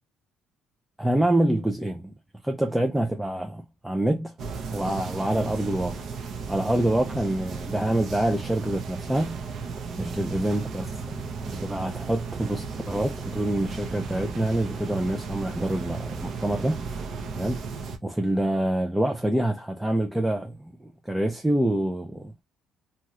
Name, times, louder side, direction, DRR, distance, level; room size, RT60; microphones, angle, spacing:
voice 1, 1.0-2.1 2.4-4.3 4.7-6.0 6.5-9.4 10.0-16.8 17.3-17.6 18.0-22.3, right 1 dB, 5° right, 0.4 m, -26 dB
sound 1, 4.4-18.0, right 5 dB, 50° right, 0.6 m, -35 dB
2.7 x 2.3 x 3.0 m
cardioid pair, 135°, 0 cm